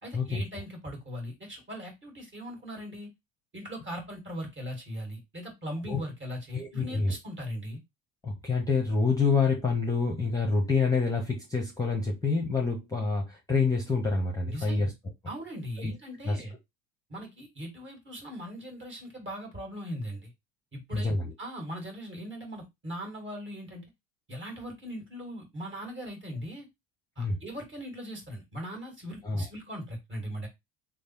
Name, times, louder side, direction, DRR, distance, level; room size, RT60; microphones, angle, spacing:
voice 1, 0.0-3.1 3.5-7.8 14.5-14.8 15.3-16.5 17.1-20.3 20.7-21.1 21.4-23.8 24.3-26.7 27.2-30.5, equal, 25° right, 1.9 m, -39 dB
voice 2, 6.5-7.1 8.2-14.9 15.8-15.9 16.2-16.4 20.9-21.3 27.2-27.4 29.2-29.4, left 4 dB, 10° left, 0.8 m, -27 dB
3.2 x 2.1 x 4.3 m
hypercardioid pair, 70°, 45 cm